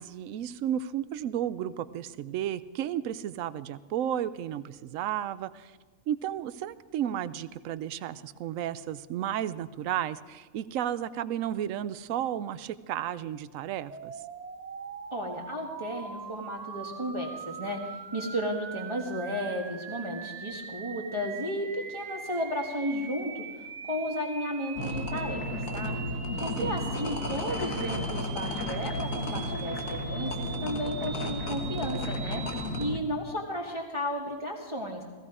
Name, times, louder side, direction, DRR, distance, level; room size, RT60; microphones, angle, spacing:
voice 1, 0.0-5.7 6.1-14.1 26.6-26.9, right 10 dB, 75° right, 15 dB, 1.0 m, -33 dB
sound 1, 13.9-32.9, right 6 dB, 45° right, 0.5 m, -42 dB
voice 2, 15.1-25.9 26.4-35.0, equal, 20° right, -1 dB, 1.4 m, -34 dB
sound 2, 24.8-33.0, left 1 dB, 75° left, 1.8 m, -33 dB
17.0 x 15.5 x 4.9 m, 1.4 s
omnidirectional pair, 1.4 m